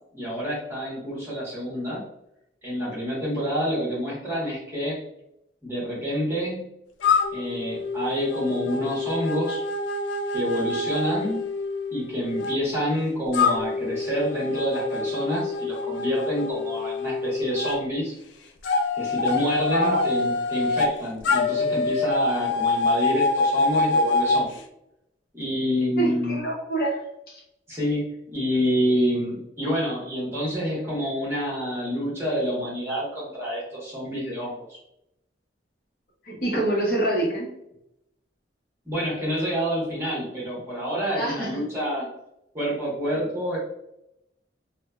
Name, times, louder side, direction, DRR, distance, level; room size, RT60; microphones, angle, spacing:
voice 1, 0.1-2.0 2.6-5.0 5.6-6.7 7.3-9.6 10.3-11.4 11.9-18.1 19.0-24.5 25.3-26.4 27.7-34.8 38.8-42.1 42.5-43.6, equal, 15° right, -7 dB, 1.1 m, -28 dB
sound 1, 7.0-12.5 13.3-17.8 18.6-20.9 21.2-24.5, left 3 dB, 80° left, 0.4 m, -25 dB
voice 2, 19.7-20.0 26.0-27.0 27.3-27.4 36.2-37.5 41.1-41.5, right 2 dB, 50° left, -3 dB, 0.8 m, -26 dB
2.9 x 2.1 x 2.3 m, 0.82 s
head